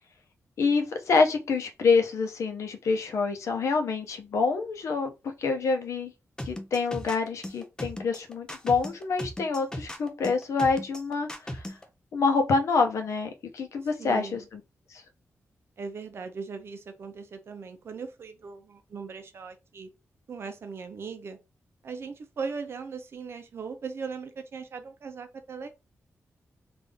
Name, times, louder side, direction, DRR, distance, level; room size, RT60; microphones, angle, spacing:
voice 1, 0.6-5.1 5.4-6.1 6.4-11.8 12.1-14.6 14.9-15.0, left 4 dB, 75° left, 0.8 m, -26 dB
sound 1, 6.4-11.8, left 1 dB, 15° left, 0.5 m, -37 dB
voice 2, 14.0-14.4 15.8-19.9 20.3-21.4 21.8-25.7, right 5 dB, 50° right, 0.7 m, -39 dB
3.5 x 2.6 x 3.5 m
wide cardioid pair, 165°, 5 cm